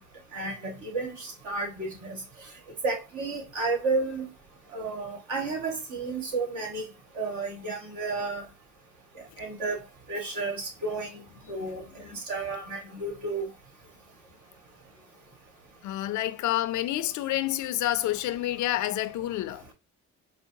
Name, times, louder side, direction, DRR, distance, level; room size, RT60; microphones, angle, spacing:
voice 1, 0.3-2.2 2.8-4.3 4.7-6.9 7.2-8.4 9.4-9.8 10.1-11.2 11.5-11.8 12.3-13.4, right 3 dB, 80° right, 1.7 m, -31 dB
voice 2, 15.8-19.7, left 14 dB, 75° left, 0.4 m, -28 dB
4.6 x 2.0 x 2.7 m
cardioid pair, 90°, 30 cm